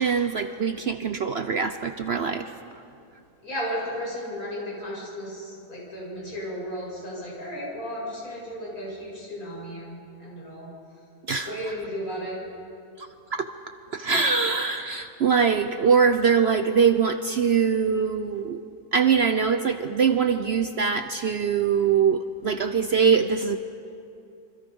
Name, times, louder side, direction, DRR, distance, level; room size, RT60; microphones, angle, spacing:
voice 1, 0.0-2.5 11.3-11.7 13.0-13.5 13.9-18.6 18.9-23.6, right 6 dB, 55° right, 8 dB, 0.8 m, -23 dB
voice 2, 3.4-10.7 11.4-12.4, equal, 65° left, -5 dB, 8.0 m, -34 dB
27.0 x 24.5 x 5.4 m, 2.6 s
omnidirectional pair, 1.6 m